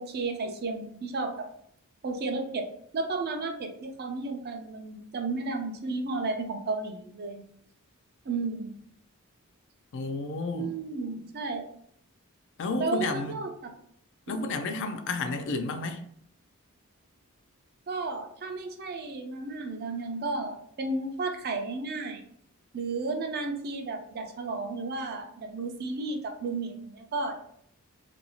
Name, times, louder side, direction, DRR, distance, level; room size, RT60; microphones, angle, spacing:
voice 1, 0.0-1.5 2.0-2.7 2.9-7.4 8.3-8.7 10.5-11.6 12.8-13.5 14.3-14.4 17.9-22.2 22.7-27.4, right 3 dB, 45° right, 0.4 m, -33 dB
voice 2, 9.9-10.7 12.6-13.4 14.3-16.1, left 3 dB, 55° left, 0.4 m, -31 dB
2.6 x 2.3 x 2.9 m
head